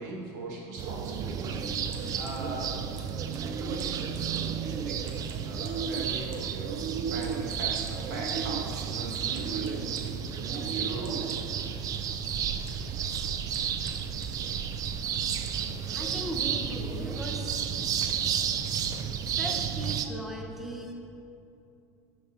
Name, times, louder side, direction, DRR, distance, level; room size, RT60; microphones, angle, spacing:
voice 1, 0.0-2.7 3.6-4.0 4.6-5.0 5.4-11.2, right 2 dB, 80° right, -1 dB, 1.3 m, -40 dB
sound 1, 0.8-20.1, right 7 dB, 40° right, 0.4 m, -32 dB
sound 2, 1.8-2.5 3.0-4.7 5.0-5.9 6.3-6.6 7.2-8.5 9.1-15.8 16.1-16.9 17.4-17.5 17.7-18.0 18.3-18.5 19.0-19.1 19.4-19.7, right 5 dB, 65° right, 0.9 m, -52 dB
voice 2, 15.9-18.0 19.3-20.9, equal, 5° right, 1 dB, 0.7 m, -38 dB
8.6 x 4.0 x 3.8 m, 2.6 s
supercardioid pair, 115°, 9 cm